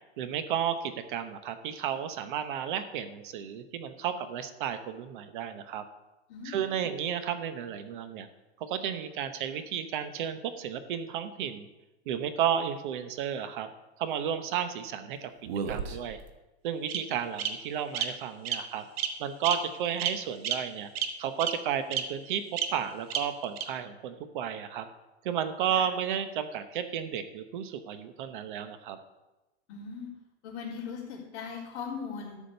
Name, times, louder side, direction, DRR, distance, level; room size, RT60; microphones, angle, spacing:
voice 1, 0.2-5.8 6.4-8.3 8.6-11.7 12.1-13.7 14.0-15.3 15.7-16.2 16.6-18.9 19.2-20.9 21.2-22.4 22.7-24.9 25.2-29.0, right 9 dB, 50° right, 10 dB, 0.9 m, -32 dB
voice 2, 6.3-6.8 25.7-25.9 29.7-30.1 30.4-32.4, left 6 dB, 35° left, -6 dB, 3.6 m, -39 dB
Bird vocalization bird call bird song, 15.5-16.2 16.9-17.0 17.4-17.5 17.9-18.0 18.4-18.6 19.0-19.1 19.4-19.5 20.0-20.1 20.4-20.5 21.0-21.1 21.4-21.5 21.9-22.0 22.6-22.7 23.1-23.2 23.6-23.7, right 9 dB, 65° right, 1.2 m, -29 dB
13.0 x 5.1 x 6.7 m, 1.1 s
supercardioid pair, 160°, 33 cm